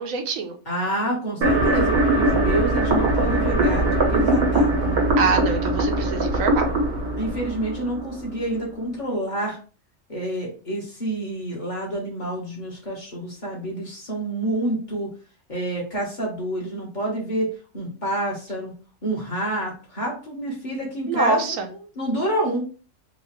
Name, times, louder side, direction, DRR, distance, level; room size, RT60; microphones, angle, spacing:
voice 1, 0.0-0.6 5.2-6.7 21.1-21.7, right 4 dB, 70° right, 4 dB, 1.1 m, -24 dB
voice 2, 0.7-5.0 7.2-9.6 10.1-15.1 15.5-18.7 19.0-22.6, right 1 dB, 30° left, -3 dB, 1.5 m, -28 dB
sound 1, 1.4-8.4, right 1 dB, 90° right, 1.6 m, -21 dB
3.9 x 2.5 x 3.2 m, 0.37 s
omnidirectional pair, 1.5 m